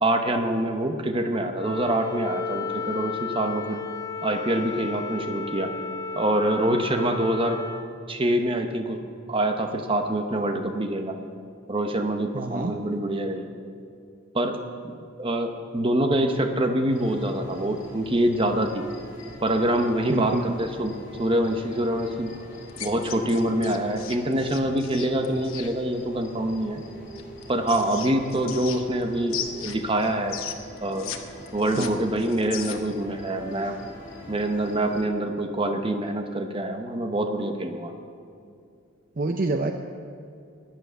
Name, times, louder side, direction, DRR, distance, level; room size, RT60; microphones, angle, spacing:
voice 1, 0.0-3.8 4.2-5.7 6.1-7.6 8.1-9.0 9.3-11.2 11.7-13.5 14.3-14.6 14.8-14.9 15.2-18.8 19.4-22.3 22.8-26.8 27.5-30.4 30.8-31.1 31.5-33.8 34.3-37.9, right 1 dB, 25° right, 5 dB, 0.9 m, -25 dB
Wind instrument woodwind instrument, 1.6-7.9, left 4 dB, 15° left, 0.4 m, -33 dB
voice 2, 12.3-12.7 20.1-20.6 31.8-32.0 39.2-39.7, right 2 dB, 40° right, 5 dB, 0.5 m, -27 dB
sound 1, 16.9-35.0, equal, 40° left, 4.1 m, -44 dB
sound 2, 22.7-25.7 27.2-29.0 29.3-31.2 31.5-33.0, left 9 dB, 75° left, 1.0 m, -36 dB
11.0 x 10.5 x 8.1 m, 2.5 s
head